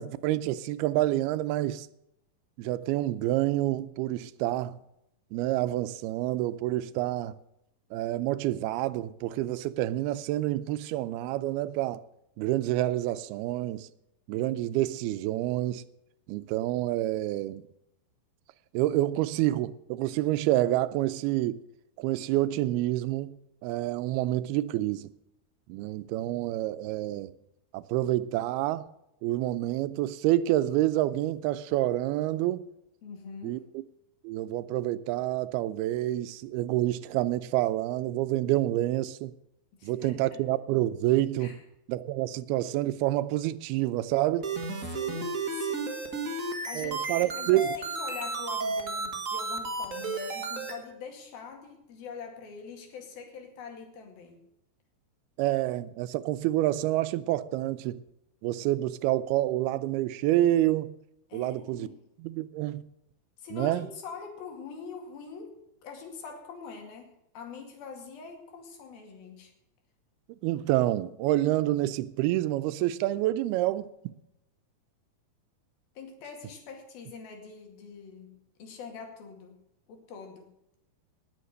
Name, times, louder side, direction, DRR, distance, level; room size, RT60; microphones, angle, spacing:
voice 1, 0.0-1.9 2.6-4.8 5.3-7.4 7.9-12.0 12.4-13.9 14.3-15.8 16.3-17.6 18.7-21.6 22.0-23.4 23.6-25.1 25.7-27.3 27.7-28.9 29.2-32.7 33.4-33.6 34.2-39.3 39.8-41.6 41.9-44.5 46.8-47.8 55.4-58.0 58.4-60.9 61.3-61.9 62.2-62.8 63.5-63.9 70.4-74.1, right 15 dB, 90° right, 2.6 m, -28 dB
voice 2, 33.0-33.6 39.8-40.2 41.4-41.6 44.9-46.0 46.7-54.4 61.3-62.0 63.4-65.6 65.8-69.5 76.0-79.6 79.9-80.5, left 5 dB, 70° left, 4.0 m, -44 dB
sound 1, 44.4-50.7, right 3 dB, 40° right, 1.1 m, -33 dB
18.5 x 7.2 x 6.5 m
omnidirectional pair, 4.4 m